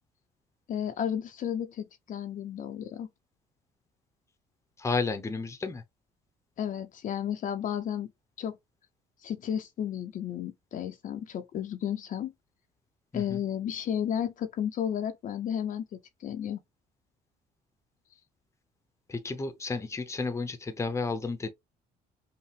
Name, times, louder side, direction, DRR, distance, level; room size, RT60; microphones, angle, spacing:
voice 1, 0.7-3.1 6.6-8.1 8.4-8.6 9.2-12.3 13.1-16.6, left 9 dB, 50° left, 0.6 m, -33 dB
voice 2, 4.8-5.8 13.1-13.4 19.1-21.5, left 4 dB, 15° left, 0.7 m, -32 dB
5.6 x 2.1 x 3.3 m
cardioid pair, 110°, 17 cm